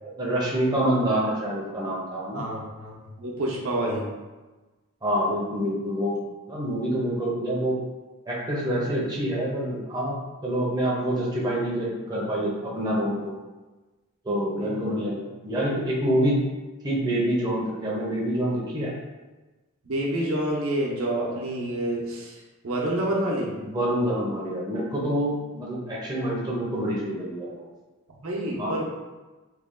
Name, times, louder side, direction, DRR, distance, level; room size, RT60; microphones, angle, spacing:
voice 1, 0.0-2.5 5.0-6.1 6.5-7.8 8.3-13.3 14.2-16.5 16.8-18.9 23.6-27.7 28.6-28.7, equal, 20° right, -5 dB, 0.6 m, -26 dB
voice 2, 2.3-4.1 14.6-14.8 19.8-23.5 28.1-28.8, right 1 dB, 70° right, -3 dB, 0.8 m, -28 dB
3.2 x 2.3 x 3.6 m, 1.2 s
head